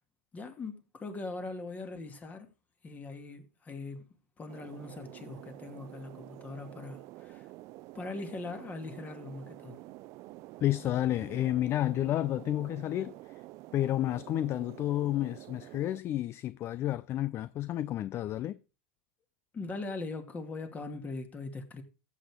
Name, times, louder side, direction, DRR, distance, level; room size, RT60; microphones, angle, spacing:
voice 1, 0.3-2.5 2.8-4.1 4.4-7.5 7.9-9.8 19.5-21.8, left 3 dB, 20° left, 2.5 m, -41 dB
sound 1, 4.5-16.0, right 18 dB, 50° right, 0.6 m, -49 dB
voice 2, 10.6-13.2 13.7-18.6, left 13 dB, 40° left, 0.5 m, -31 dB
14.0 x 8.4 x 3.7 m
hypercardioid pair, 105°, 7 cm